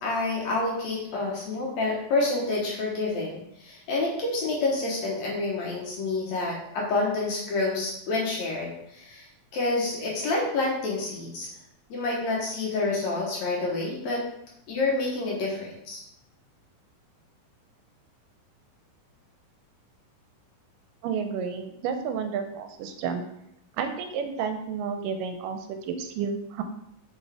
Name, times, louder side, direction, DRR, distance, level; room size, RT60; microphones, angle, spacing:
voice 1, 0.0-9.3 9.5-11.5 11.9-14.2 14.7-16.0, left 2 dB, 65° left, -3 dB, 2.2 m, -28 dB
voice 2, 21.0-23.2 23.8-26.6, right 6 dB, 80° right, 7 dB, 2.1 m, -31 dB
7.0 x 4.6 x 3.4 m, 0.78 s
omnidirectional pair, 4.0 m